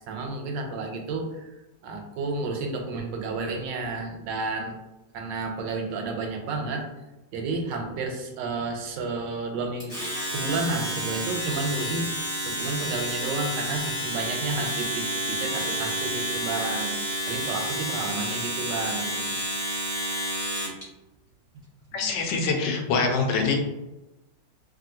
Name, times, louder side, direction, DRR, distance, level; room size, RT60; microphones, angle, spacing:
voice 1, 0.1-4.8 5.1-6.9 7.3-9.9 10.3-19.4 21.9-22.1, right 3 dB, 80° right, 3 dB, 1.2 m, -31 dB
Domestic sounds home sounds, 9.8-20.8, equal, 35° left, 1.2 m, -30 dB
voice 2, 21.9-23.6, left 4 dB, 80° left, 3 dB, 1.2 m, -24 dB
2.9 x 2.5 x 2.7 m, 1.0 s
omnidirectional pair, 2.0 m